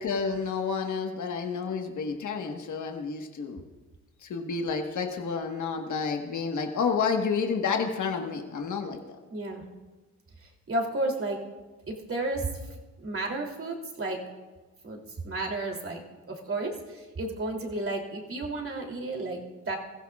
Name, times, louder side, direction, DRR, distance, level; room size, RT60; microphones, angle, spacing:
voice 1, 0.0-3.6 4.2-9.0, left 5 dB, 75° left, 3 dB, 1.4 m, -30 dB
voice 2, 9.3-9.6 10.4-11.4 11.9-12.5 13.0-14.2 14.8-15.0 15.2-16.0 16.3-19.8, right 2 dB, 45° right, 0 dB, 3.0 m, -32 dB
22.0 x 15.5 x 2.4 m, 1.2 s
cardioid pair, 85°, 30 cm